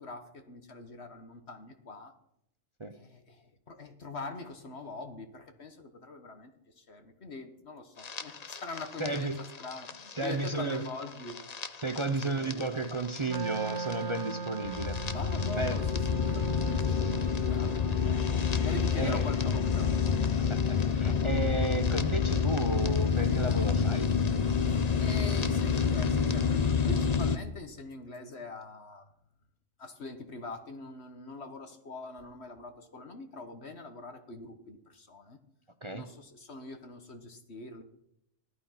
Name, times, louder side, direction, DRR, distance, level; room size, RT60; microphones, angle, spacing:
voice 1, 0.0-2.1 2.9-11.4 12.0-12.1 12.4-12.7 15.1-19.9 24.7-29.1 29.8-35.4 35.9-37.8, left 3 dB, 55° left, 7 dB, 1.5 m, -43 dB
sound 1, 8.0-27.4, left 6 dB, 35° left, 0.8 m, -29 dB
voice 2, 9.0-9.4 10.2-10.8 11.8-15.0 15.6-15.8 19.0-19.3 20.4-24.1 35.8-36.0, right 2 dB, 30° right, 8 dB, 0.7 m, -33 dB
Wind instrument woodwind instrument, 13.3-20.4, right 4 dB, 65° right, 1.4 m, -39 dB
16.0 x 12.0 x 5.8 m, 0.78 s
omnidirectional pair, 1.3 m